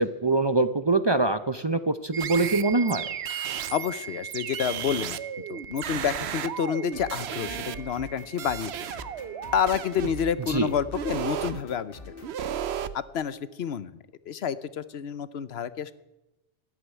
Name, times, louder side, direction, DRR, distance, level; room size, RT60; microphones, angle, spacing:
voice 1, 0.0-3.1 10.5-10.7, right 3 dB, 30° right, 11 dB, 0.6 m, -24 dB
sound 1, 2.1-10.8, right 8 dB, 70° right, 1.6 m, -41 dB
sound 2, 2.2-3.9 4.3-8.1 8.4-10.3 10.9-11.6 12.2-12.9, right 9 dB, 90° right, 1.0 m, -34 dB
voice 2, 3.7-5.2 5.5-8.7 9.5-12.0 12.9-14.0 14.3-15.9, left 8 dB, 80° left, 16 dB, 1.0 m, -29 dB
sound 3, 6.8-12.3, left 3 dB, 60° left, 1.8 m, -45 dB
13.5 x 11.5 x 9.0 m, 0.98 s
omnidirectional pair, 1.1 m